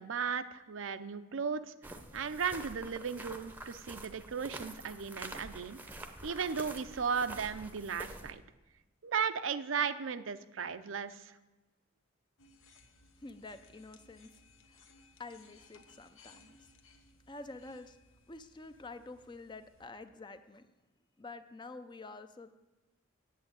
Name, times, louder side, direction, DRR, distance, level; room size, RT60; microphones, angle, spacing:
voice 1, 0.0-1.6 2.1-5.8 6.2-8.4 9.0-11.3, right 6 dB, 70° right, 11 dB, 0.5 m, -35 dB
sound 1, 1.8-8.3, right 1 dB, 10° right, 0.7 m, -47 dB
sound 2, 12.4-19.9, left 3 dB, 75° left, 1.1 m, -62 dB
voice 2, 13.2-14.4 14.7-14.9 15.2-16.7 17.3-18.0 18.3-20.7 21.2-22.6, left 3 dB, 20° left, 10 dB, 0.5 m, -48 dB
8.4 x 8.0 x 8.8 m, 1.1 s
head